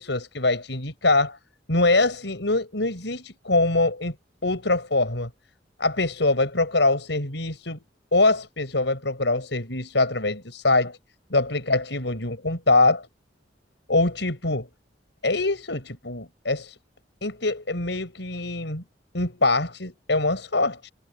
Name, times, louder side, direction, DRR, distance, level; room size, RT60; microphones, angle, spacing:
voice 1, 0.0-1.4 1.7-4.2 4.4-5.3 5.8-7.8 8.1-11.0 11.3-13.1 13.9-14.7 15.2-16.8 17.2-18.8 19.1-20.9, left 2 dB, 80° left, 5.9 m, -23 dB
head